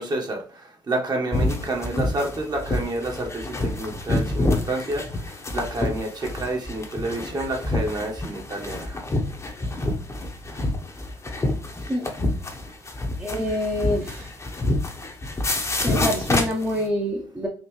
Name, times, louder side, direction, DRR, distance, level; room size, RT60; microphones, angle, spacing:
voice 1, 0.0-9.0, right 2 dB, 35° right, 1 dB, 1.3 m, -29 dB
sound 1, 1.3-16.9, left 2 dB, 25° left, 0.9 m, -27 dB
voice 2, 13.2-14.3 15.8-17.5, equal, 15° right, -1 dB, 0.9 m, -26 dB
4.2 x 2.5 x 3.1 m, 0.38 s
hypercardioid pair, 60°, 12 cm